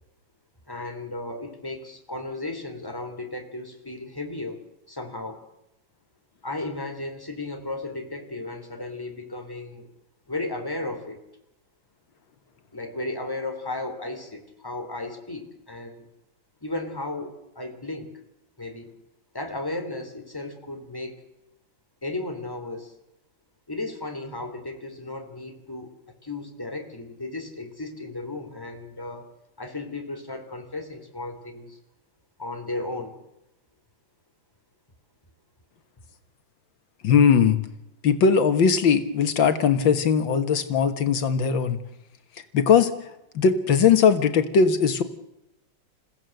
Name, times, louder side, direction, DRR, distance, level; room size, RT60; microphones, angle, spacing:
voice 1, 0.7-4.6 4.9-5.5 6.4-9.9 10.3-11.2 12.7-16.1 16.6-18.1 18.6-18.9 19.3-21.1 22.0-22.9 23.7-25.9 26.2-29.3 29.6-31.8 32.4-33.2, left 2 dB, 10° left, 4 dB, 3.4 m, -34 dB
voice 2, 37.0-37.6 38.0-41.8 42.5-42.9 43.4-45.0, left 6 dB, 80° left, 9 dB, 2.1 m, -19 dB
28.5 x 16.0 x 7.8 m, 0.89 s
omnidirectional pair, 2.1 m